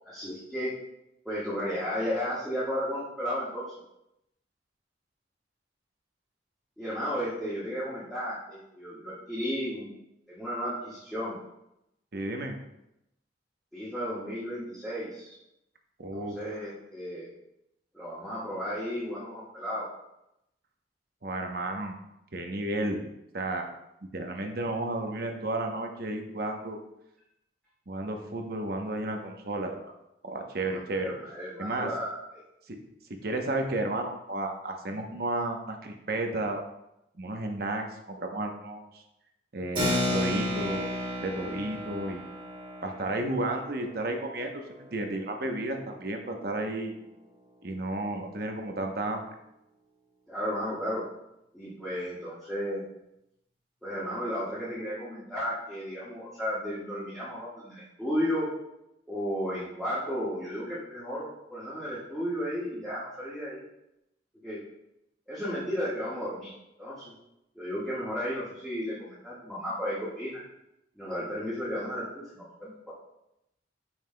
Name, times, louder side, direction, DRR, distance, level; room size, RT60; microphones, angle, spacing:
voice 1, 0.0-0.7 1.2-3.6 6.8-9.9 10.3-11.4 13.7-15.4 16.1-17.3 17.9-19.9 30.7-32.4 50.3-51.0 51.5-52.8 53.8-58.5 59.1-63.6 64.4-64.6 65.3-66.5 66.8-67.1 67.5-70.4 71.0-72.9, equal, ahead, -11 dB, 1.6 m, -34 dB
voice 2, 12.1-12.6 16.0-16.5 21.2-22.0 22.3-23.0 23.3-23.7 24.1-26.8 27.9-29.9 30.2-31.1 31.6-31.9 32.7-32.8 33.1-36.6 37.1-39.0 39.5-40.9 41.2-42.2 42.8-46.9 47.6-49.3, right 2 dB, 55° right, 3 dB, 0.9 m, -32 dB
Keyboard (musical), 39.8-45.8, left 1 dB, 30° right, 2.0 m, -33 dB
9.4 x 5.7 x 2.2 m, 0.85 s
head